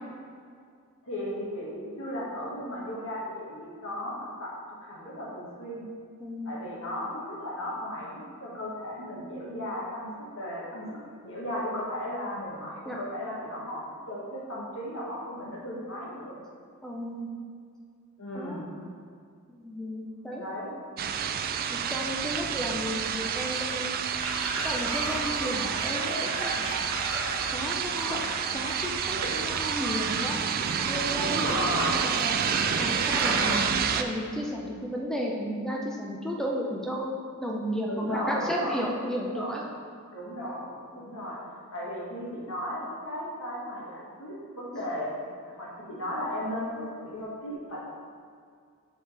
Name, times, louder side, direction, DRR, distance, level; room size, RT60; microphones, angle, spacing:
voice 1, 1.0-4.5 4.8-5.8 6.4-10.1 10.3-10.9 11.2-16.4 18.2-18.7 20.3-20.7 31.4-32.1 37.9-38.8 39.3-39.6 40.1-41.4 41.7-45.1 45.4-47.8, equal, 65° left, -6 dB, 1.9 m, -35 dB
voice 2, 6.2-6.6 12.9-13.0 16.8-17.3 18.3-18.6 19.5-20.4 21.7-24.0 24.6-26.9 27.5-28.2 28.5-30.4 30.9-31.7 32.0-32.4 32.8-33.7 33.9-37.1 37.4-39.6 40.9-41.0, equal, 5° left, -2 dB, 0.6 m, -33 dB
sound 1, 21.0-34.0, right 7 dB, 40° right, 0.4 m, -29 dB
sound 2, 24.2-33.6, right 2 dB, 80° right, 1.3 m, -35 dB
7.5 x 6.4 x 3.4 m, 2.2 s
head